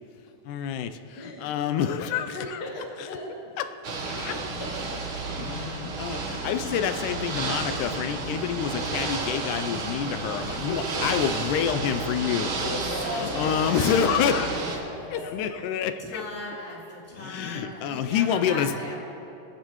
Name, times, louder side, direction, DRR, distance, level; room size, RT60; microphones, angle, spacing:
voice 1, 0.5-2.6 3.0-3.1 3.6-3.7 4.0-4.3 5.4-12.5 13.1-14.6 15.1-16.2 17.1-18.8, left 8 dB, 90° left, 9 dB, 2.1 m, -28 dB
voice 2, 1.1-1.5 1.8-2.0 2.3-3.6 4.3-5.4 5.9-6.0 10.6-10.8 12.6-14.0 14.8-15.5, left 2 dB, 45° left, -3 dB, 1.4 m, -38 dB
Ocean / Boat Water vehicle, 3.8-14.8, right 3 dB, 55° right, 1.7 m, -31 dB
voice 3, 11.4-12.3 12.6-15.2 16.0-19.0, left 1 dB, 5° left, -7 dB, 2.8 m, -38 dB
27.5 x 9.9 x 3.1 m, 2.8 s
omnidirectional pair, 3.5 m